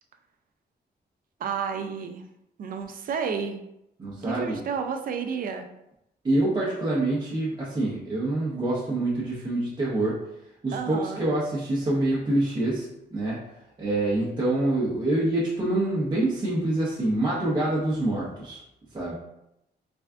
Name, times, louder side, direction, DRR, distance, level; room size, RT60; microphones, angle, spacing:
voice 1, 1.4-2.2 2.6-3.6 4.2-5.7 10.7-11.2, right 6 dB, 55° right, 6 dB, 0.4 m, -31 dB
voice 2, 4.0-4.6 6.2-10.2 10.6-13.4 13.8-18.6 18.9-19.1, right 2 dB, 25° right, -7 dB, 0.7 m, -26 dB
3.4 x 2.3 x 3.5 m, 0.83 s
wide cardioid pair, 165°, 18 cm